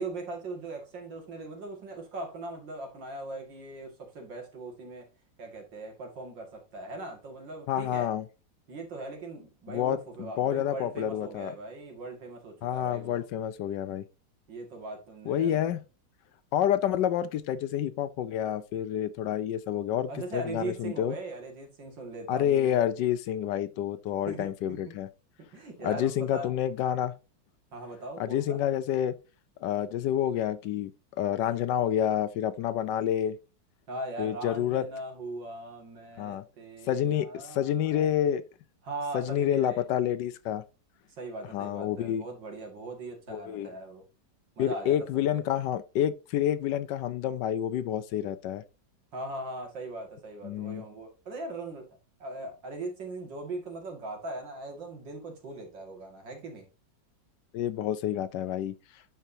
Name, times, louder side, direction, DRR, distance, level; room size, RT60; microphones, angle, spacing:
voice 1, 0.0-5.1 5.4-8.1 8.7-13.2 14.5-15.7 20.1-22.8 24.3-25.0 25.5-26.5 27.7-28.6 33.9-38.1 38.8-39.8 41.2-44.0 44.6-45.3 49.1-51.9 52.2-56.7, right 2 dB, 75° right, 2.7 m, -40 dB
voice 2, 7.7-8.2 9.7-11.5 12.6-14.0 15.3-15.8 16.5-21.1 22.3-25.1 25.8-27.1 28.2-29.1 29.6-30.9 31.2-33.4 34.2-34.8 36.2-36.4 36.9-38.4 39.1-40.6 41.5-42.3 43.3-43.7 44.6-48.6 50.4-50.8 57.5-58.7, left 10 dB, 75° left, 1.2 m, -28 dB
11.5 x 4.6 x 2.7 m
omnidirectional pair, 2.0 m